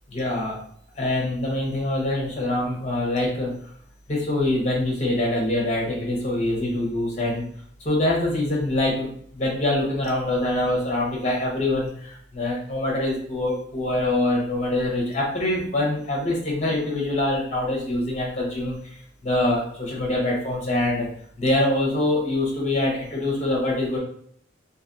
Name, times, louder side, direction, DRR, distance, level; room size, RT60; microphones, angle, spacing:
voice 1, 0.1-0.6 1.0-3.5 4.1-7.4 7.8-21.1 21.4-24.0, left 1 dB, 35° left, -2 dB, 0.8 m, -24 dB
2.6 x 2.4 x 2.6 m, 0.62 s
head